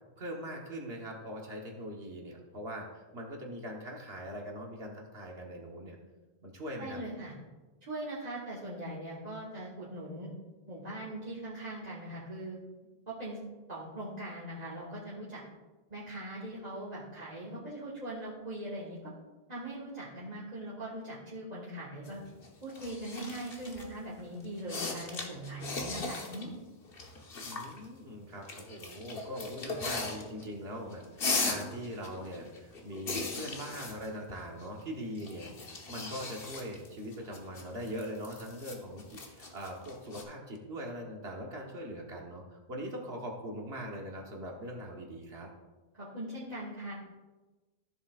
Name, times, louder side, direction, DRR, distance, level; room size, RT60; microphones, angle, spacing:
voice 1, 0.2-6.0 6.4-7.0 27.4-45.5, equal, 70° right, 0 dB, 1.5 m, -41 dB
voice 2, 6.8-7.3 7.8-10.3 10.7-12.6 13.1-13.4 13.7-15.4 15.9-19.1 19.5-22.2 22.6-26.5 45.9-46.9, right 1 dB, 40° right, -8 dB, 1.8 m, -41 dB
sound 1, 22.1-23.9 24.4-26.5 26.7-27.9 28.5-30.5 30.8-34.8 35.2-40.2, left 3 dB, 65° left, 1.3 m, -38 dB
14.0 x 7.5 x 2.4 m, 1.2 s
omnidirectional pair, 1.1 m